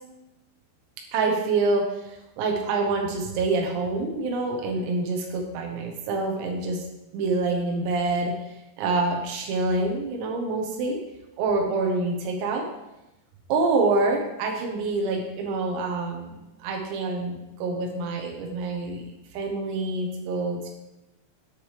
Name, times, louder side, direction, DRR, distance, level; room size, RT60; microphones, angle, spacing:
voice 1, 1.1-6.9 7.1-11.0 11.4-12.6 13.5-16.4 16.6-19.0 19.3-20.7, right 3 dB, 90° right, 1 dB, 3.9 m, -26 dB
10.0 x 9.2 x 3.3 m, 0.95 s
omnidirectional pair, 5.9 m